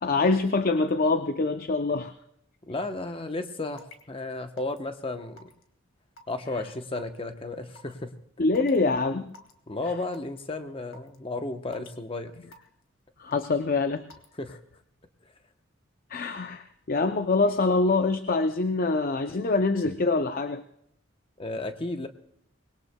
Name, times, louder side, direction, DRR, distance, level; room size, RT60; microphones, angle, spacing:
voice 1, 0.0-2.1 8.4-9.3 9.8-9.9 13.2-14.1 16.1-20.6, left 3 dB, 45° left, 9 dB, 0.5 m, -25 dB
voice 2, 2.7-5.4 6.3-8.1 9.7-12.4 14.4-14.5 21.4-22.1, left 2 dB, 25° left, 7 dB, 0.9 m, -33 dB
Raindrop / Water tap faucet / Drip, 3.8-4.0 4.6-4.8 5.4-5.6 6.2-6.5 7.0-7.2 7.7-7.9 8.5-8.8 9.3-9.5 10.1-10.4 10.9-11.2 11.7-12.0 12.5-12.8 13.3-13.6 14.1-14.3, left 2 dB, 80° left, 1.9 m, -49 dB
24.5 x 21.0 x 2.2 m, 0.72 s
head